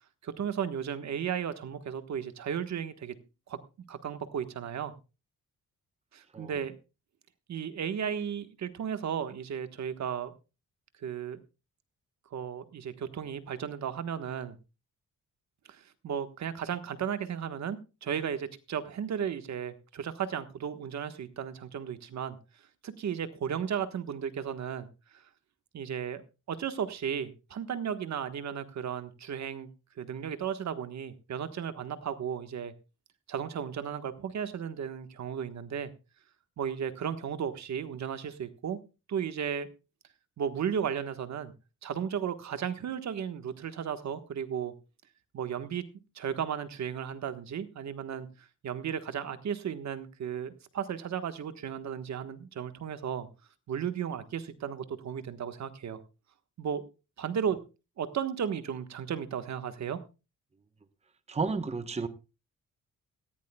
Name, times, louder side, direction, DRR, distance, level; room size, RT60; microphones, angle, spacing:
voice 1, 0.2-3.1 3.5-3.6 3.9-4.9 6.1-6.7 7.5-10.3 11.0-11.4 12.3-14.6 15.7-22.4 22.8-24.9 25.1-25.2 25.7-26.2 26.5-29.7 30.0-32.7 33.3-35.9 36.6-38.8 39.1-39.7 40.4-41.5 41.8-44.7 45.3-45.8 46.1-53.3 53.7-56.0 56.6-56.8 57.2-57.6 58.0-60.0, right 8 dB, 60° right, 10 dB, 1.4 m, -34 dB
voice 2, 61.3-62.1, right 4 dB, 20° right, 10 dB, 1.0 m, -32 dB
18.0 x 15.0 x 2.3 m, 0.30 s
cardioid pair, 140°, 31 cm